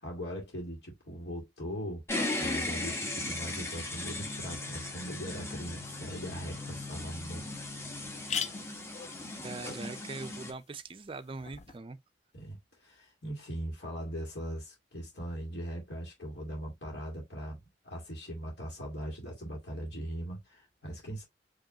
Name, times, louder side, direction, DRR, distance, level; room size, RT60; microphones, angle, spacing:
voice 1, 0.0-7.4 12.3-21.2, equal, 75° left, 1.9 m, -40 dB
sound 1, 2.1-10.5, left 2 dB, 15° left, 1.0 m, -37 dB
sound 2, 6.7-6.8 7.3-7.4 7.6-7.7 8.0-11.8, left 7 dB, 40° left, 0.5 m, -42 dB
voice 2, 9.4-12.0, right 3 dB, 30° right, 0.4 m, -42 dB
5.1 x 3.1 x 2.8 m
head